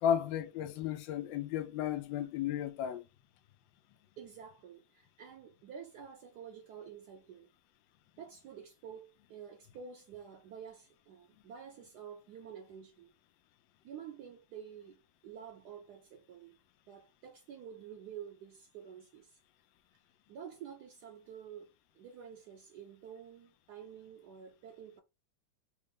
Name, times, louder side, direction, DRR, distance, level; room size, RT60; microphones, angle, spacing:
voice 1, 0.0-3.1, left 9 dB, 85° left, 1.3 m, -33 dB
voice 2, 4.2-7.5 8.2-13.1 13.8-15.0 15.2-16.6 16.9-19.4 20.3-25.0, right 8 dB, 70° right, 1.1 m, -49 dB
3.9 x 2.0 x 3.5 m
omnidirectional pair, 2.0 m